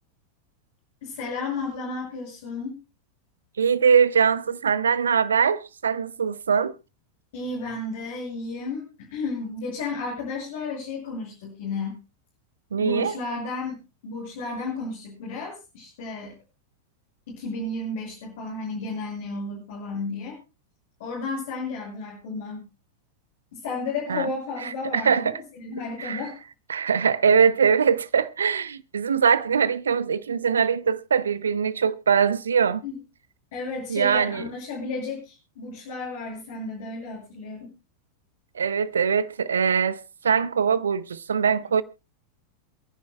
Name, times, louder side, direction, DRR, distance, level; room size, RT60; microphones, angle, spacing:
voice 1, 1.0-2.7 7.3-12.0 12.8-16.3 17.3-20.4 21.0-22.7 23.5-26.3 32.8-33.0 33.5-37.7, left 3 dB, 55° left, 6.2 m, -33 dB
voice 2, 3.6-6.7 12.7-13.2 24.1-24.3 24.6-25.4 26.0-26.2 26.7-32.8 33.9-34.4 38.5-41.8, right 6 dB, 70° right, 0.7 m, -22 dB
27.5 x 10.5 x 2.2 m
figure-of-eight pair, 90°, 0 cm